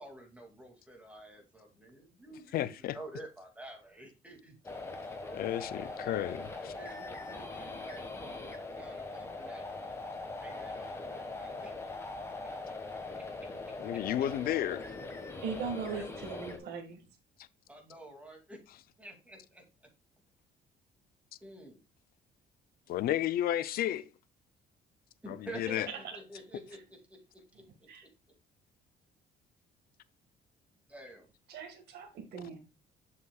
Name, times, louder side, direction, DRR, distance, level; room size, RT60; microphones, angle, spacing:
voice 1, 0.0-4.6 5.2-9.7 10.4-11.7 12.4-12.5 13.9-14.0 15.9-16.1 17.7-18.6 19.0-19.6 21.4-21.8 25.2-27.2 27.5-27.6 30.9-31.3, right 1 dB, 10° right, 2.4 m, -49 dB
voice 2, 2.5-3.0 5.3-6.5 13.8-14.9 22.9-24.1 25.3-25.9, left 12 dB, 60° left, 0.5 m, -32 dB
sound 1, 4.6-16.6, left 3 dB, 15° left, 1.5 m, -41 dB
voice 3, 15.4-17.0 25.9-26.0 27.9-28.0 31.5-32.6, right 6 dB, 70° right, 1.8 m, -39 dB
7.0 x 6.6 x 2.3 m
cardioid pair, 110°, 17 cm